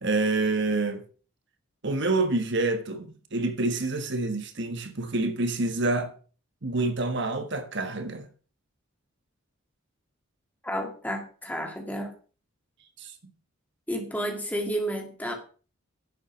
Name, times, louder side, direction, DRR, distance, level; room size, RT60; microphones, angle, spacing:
voice 1, 0.0-1.0 1.8-6.1 6.6-8.3 13.0-13.1, right 2 dB, 55° right, 1.4 m, -27 dB
voice 2, 10.6-12.1 13.9-15.3, equal, 5° left, 2.1 m, -31 dB
11.0 x 7.5 x 6.0 m
head